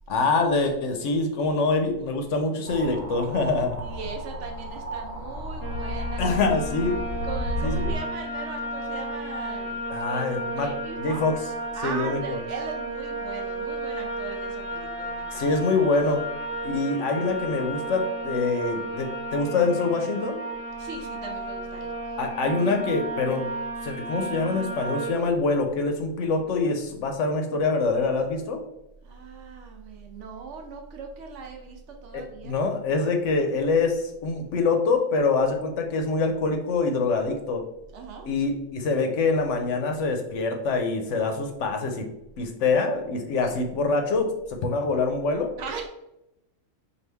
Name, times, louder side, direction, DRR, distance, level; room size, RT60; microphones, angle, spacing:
voice 1, 0.1-3.8 6.2-7.0 7.6-7.9 9.9-10.7 11.0-11.3 11.8-12.4 15.3-16.2 16.6-20.4 22.2-23.4 23.8-28.6 32.1-37.6 38.2-42.1 42.4-44.3 44.6-45.5, left 3 dB, 70° left, 4 dB, 0.9 m, -25 dB
sound 1, 2.7-8.0, left 1 dB, 85° right, 1.4 m, -33 dB
voice 2, 3.8-6.5 7.2-10.2 10.6-11.2 11.7-15.5 20.8-21.9 29.0-32.6 37.9-38.3 43.4-43.6 45.6-45.9, right 5 dB, 65° right, 2 dB, 0.9 m, -39 dB
sound 2, 5.6-25.1, right 1 dB, 25° right, 0.4 m, -33 dB
4.7 x 2.5 x 3.3 m, 0.87 s
omnidirectional pair, 1.4 m